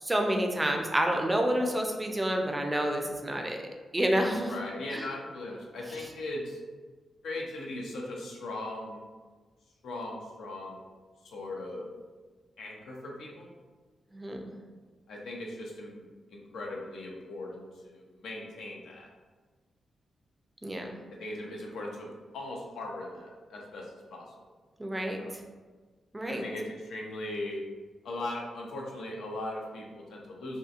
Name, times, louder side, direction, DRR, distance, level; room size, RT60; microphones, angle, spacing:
voice 1, 0.0-3.6 3.9-4.5 4.9-5.1 14.1-14.5 20.6-21.0 24.8-25.2 26.1-26.4, right 1 dB, 20° right, 3 dB, 0.4 m, -29 dB
voice 2, 4.5-6.6 7.2-9.0 9.8-10.8 11.2-11.9 12.6-13.5 15.1-19.1 21.2-22.1 22.3-24.3 25.2-25.3 26.3-27.6 28.0-30.6, left 1 dB, 85° left, -1 dB, 0.5 m, -39 dB
2.7 x 2.3 x 2.4 m, 1.4 s
cardioid pair, 80°, 0 cm